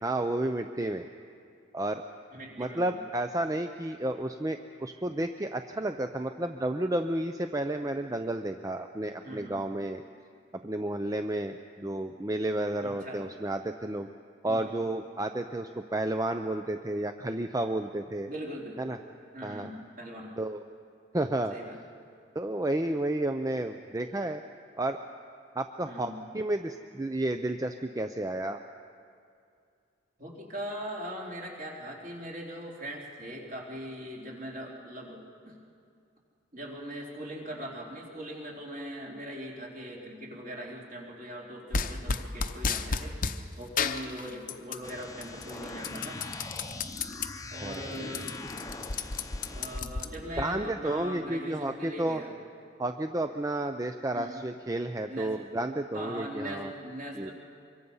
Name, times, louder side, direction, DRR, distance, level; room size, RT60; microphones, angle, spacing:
voice 1, 0.0-1.1 1.7-2.0 2.6-10.0 10.6-14.1 14.4-18.3 18.8-19.0 19.4-19.7 20.4-20.6 21.1-21.5 22.3-24.4 24.8-25.0 25.5-28.6 47.6-47.8 50.4-52.2 52.8-56.7 57.2-57.3, right 1 dB, 15° right, 7 dB, 0.5 m, -31 dB
voice 2, 2.3-2.9 9.2-9.6 12.8-13.3 14.4-14.8 18.3-18.8 19.3-20.3 21.5-21.8 25.8-26.2 30.2-35.6 36.5-43.1 43.6-46.2 47.5-48.3 49.5-52.3 54.1-54.4 55.0-55.3 55.9-57.3, equal, 45° right, -2 dB, 3.8 m, -40 dB
sound 1, 41.7-43.4 43.8-44.9 45.2-47.3 47.7-47.8 48.0-50.5, left 5 dB, 45° left, 0.8 m, -32 dB
sound 2, 44.8-49.8, left 2 dB, 15° left, 0.9 m, -41 dB
25.0 x 23.0 x 5.6 m, 2.4 s
head